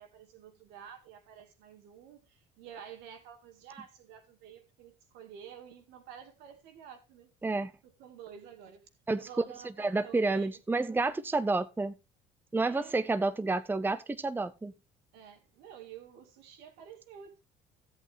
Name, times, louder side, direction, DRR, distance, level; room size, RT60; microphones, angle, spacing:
voice 1, 0.0-7.3 7.8-8.8 9.2-10.5 12.6-13.0 15.1-17.4, right 8 dB, 75° right, 2.1 m, -50 dB
voice 2, 9.8-11.9 12.5-14.7, right 3 dB, 10° right, 0.7 m, -30 dB
13.5 x 8.3 x 3.4 m
hypercardioid pair, 70°, 17 cm